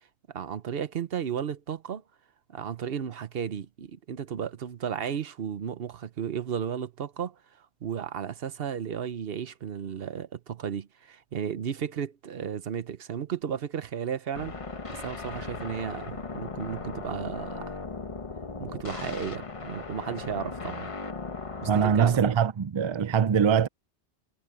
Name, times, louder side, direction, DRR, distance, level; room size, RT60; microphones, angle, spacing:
voice 1, 0.3-2.0 2.5-14.5 14.9-17.7 18.6-20.9 21.6-22.2, right 8 dB, 65° right, 1.0 m, -34 dB
sound 1, 14.3-22.3, left 4 dB, 30° left, 1.0 m, -38 dB
voice 2, 21.7-23.7, right 7 dB, 45° right, 0.4 m, -23 dB
omnidirectional pair, 1.1 m